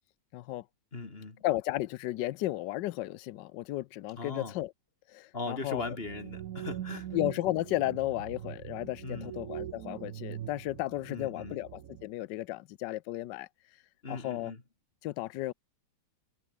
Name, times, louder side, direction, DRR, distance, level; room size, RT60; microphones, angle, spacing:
voice 1, 0.3-0.6 1.4-4.7 5.1-6.0 7.1-13.5 14.1-14.5 15.0-15.5, left 16 dB, 85° left, 1.3 m, -34 dB
voice 2, 0.9-1.4 4.2-4.5 5.3-7.1 9.0-9.3 11.1-11.6 14.0-14.6, left 3 dB, 35° left, 2.8 m, -39 dB
sound 1, 5.6-12.1, right 11 dB, 60° right, 1.1 m, -42 dB
omnidirectional pair, 1.9 m